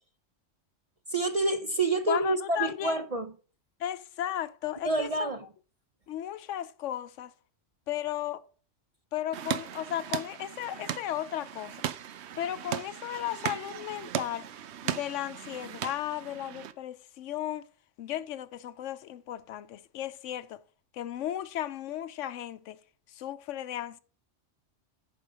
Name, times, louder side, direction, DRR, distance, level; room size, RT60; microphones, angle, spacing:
voice 1, 1.1-3.3 4.8-5.4, right 2 dB, 45° right, 0.5 m, -28 dB
voice 2, 2.1-3.0 3.8-5.3 6.1-7.3 7.9-8.4 9.1-11.8 12.4-14.5 14.8-17.6 18.0-20.6 20.9-22.8 23.1-24.0, left 12 dB, 80° left, 1.0 m, -35 dB
sound 1, 9.3-16.7, right 10 dB, 65° right, 0.9 m, -37 dB
10.0 x 5.0 x 6.1 m
omnidirectional pair, 1.3 m